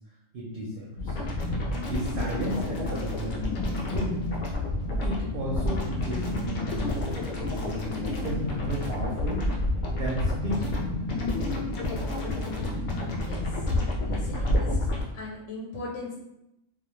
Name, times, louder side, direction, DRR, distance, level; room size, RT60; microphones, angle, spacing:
voice 1, 0.3-1.2 1.8-4.2 5.0-9.5 9.9-10.8, equal, 60° right, -4 dB, 0.6 m, -34 dB
sound 1, 1.0-15.0, left 2 dB, 60° left, 0.5 m, -29 dB
voice 2, 13.2-13.5 14.0-14.9 15.1-16.1, left 2 dB, 75° left, -4 dB, 0.9 m, -39 dB
2.4 x 2.2 x 3.0 m, 0.85 s
omnidirectional pair, 1.3 m